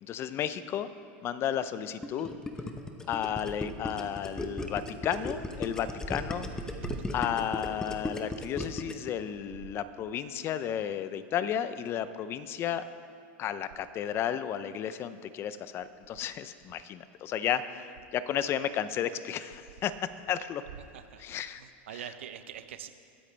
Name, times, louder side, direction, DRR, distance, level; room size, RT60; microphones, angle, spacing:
voice 1, 0.0-0.9 1.2-2.3 3.1-6.5 7.1-12.8 13.4-19.9 20.3-20.6 21.2-21.6 21.9-22.1, left 9 dB, 40° left, 13 dB, 0.6 m, -33 dB
Gurgling, 2.0-9.1, left 2 dB, 10° left, 1.0 m, -36 dB
voice 2, 20.9-21.2 21.6-22.9, right 10 dB, 85° right, 10 dB, 0.8 m, -42 dB
21.5 x 8.5 x 3.4 m, 2.3 s
hypercardioid pair, 110°, 6 cm